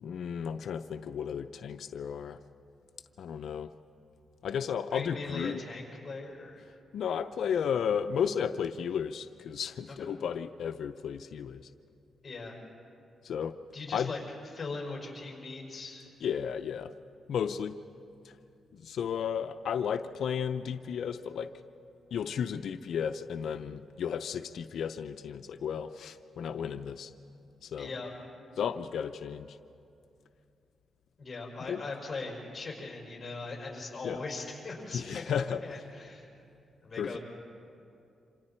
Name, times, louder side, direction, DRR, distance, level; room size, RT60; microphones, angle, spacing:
voice 1, 0.0-2.4 3.2-3.7 4.4-5.6 6.9-11.7 13.2-13.5 13.9-14.1 16.2-16.9 17.3-17.7 18.2-18.3 18.7-21.5 22.1-27.1 27.6-27.9 28.6-29.6 31.7-31.8 34.0-34.2 34.9-35.6 37.0-37.2, left 7 dB, 75° left, 9 dB, 0.5 m, -33 dB
voice 2, 4.9-6.6 10.0-10.1 12.2-12.6 13.7-14.2 14.5-16.1 27.8-28.1 31.2-35.3 35.6-36.3 36.8-37.2, left 3 dB, 25° left, -1 dB, 5.5 m, -40 dB
28.0 x 26.5 x 4.4 m, 2.7 s
cardioid pair, 130°, 0 cm